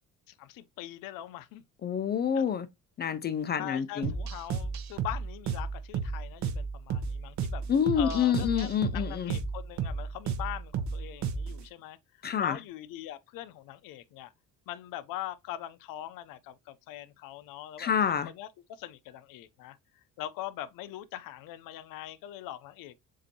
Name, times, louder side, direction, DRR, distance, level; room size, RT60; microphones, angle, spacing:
voice 1, 0.3-1.6 2.3-2.4 3.6-7.6 8.0-14.3 14.7-22.9, left 13 dB, 80° left, 0.6 m, -42 dB
voice 2, 1.8-2.7 3.0-4.1 7.7-9.3 12.2-12.6 17.8-18.3, left 8 dB, 30° left, 0.4 m, -27 dB
sound 1, 4.0-11.6, right 5 dB, 55° right, 0.8 m, -33 dB
7.4 x 2.6 x 2.8 m
cardioid pair, 140°, 33 cm